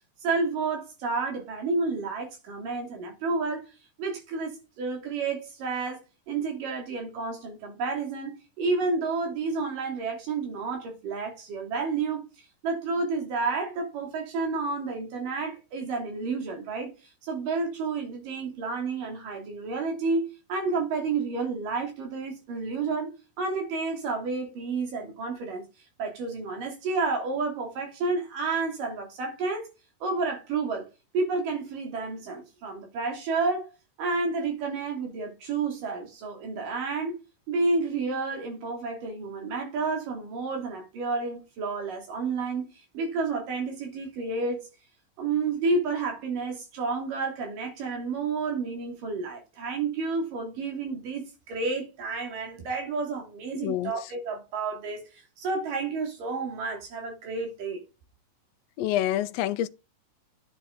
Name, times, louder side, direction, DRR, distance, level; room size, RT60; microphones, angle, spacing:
voice 1, 0.2-3.6 4.0-12.2 12.6-16.9 17.2-23.1 23.4-25.6 26.0-29.7 30.0-30.9 31.1-33.7 34.0-37.2 37.5-44.7 45.2-57.8, right 4 dB, 80° right, 4.7 m, -30 dB
voice 2, 53.6-53.9 58.8-59.7, left 12 dB, 75° left, 1.6 m, -27 dB
10.5 x 8.8 x 4.6 m
omnidirectional pair, 3.8 m